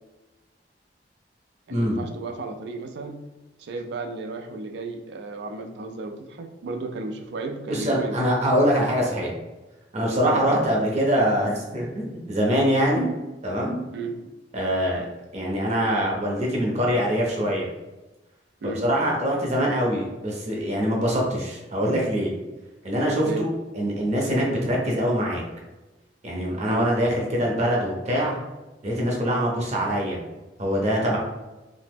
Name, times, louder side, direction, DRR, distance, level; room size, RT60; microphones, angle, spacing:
voice 1, 1.7-3.3 3.6-8.2 10.2-10.4 13.9-14.3 18.6-18.9 23.2-23.5 26.6-26.9, right 3 dB, 65° right, 5 dB, 0.4 m, -34 dB
voice 2, 7.7-9.3 9.9-13.1 13.4-13.8 14.5-15.1 15.3-17.7 18.8-22.3 22.8-23.5 23.8-25.4 26.2-28.4 28.8-30.2 30.6-31.2, equal, 40° right, -2 dB, 0.7 m, -23 dB
2.8 x 2.1 x 3.4 m, 1.1 s
head